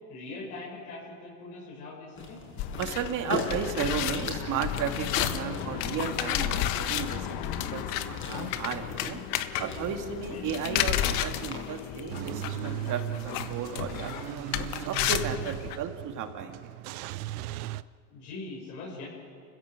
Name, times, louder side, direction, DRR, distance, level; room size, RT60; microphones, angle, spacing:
voice 1, 0.1-2.4 10.3-10.5 18.1-19.1, left 3 dB, 70° left, -3 dB, 7.0 m, -41 dB
sound 1, 2.2-11.8, left 2 dB, 25° left, 5.3 m, -40 dB
sound 2, 2.6-15.8, left 11 dB, 50° left, 1.3 m, -32 dB
voice 2, 2.8-7.4 7.7-9.2 9.6-16.6, right 7 dB, 40° right, 5 dB, 2.5 m, -34 dB
Car / Engine starting / Idling, 12.1-17.8, right 15 dB, 70° right, 0.8 m, -37 dB
30.0 x 16.0 x 7.7 m, 2.2 s
supercardioid pair, 130°, 45 cm